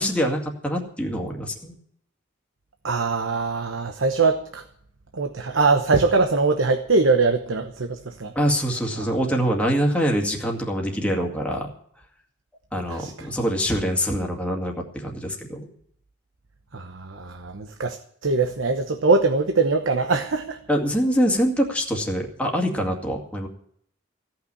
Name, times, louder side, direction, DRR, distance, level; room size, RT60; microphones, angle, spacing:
voice 1, 0.0-1.8 8.4-11.7 12.7-15.7 20.7-23.5, equal, 5° left, 0 dB, 2.1 m, -24 dB
voice 2, 2.8-4.6 5.1-8.3 9.0-9.2 12.9-13.3 16.7-20.6, right 3 dB, 85° right, 6 dB, 1.0 m, -22 dB
16.5 x 5.9 x 9.7 m, 0.66 s
head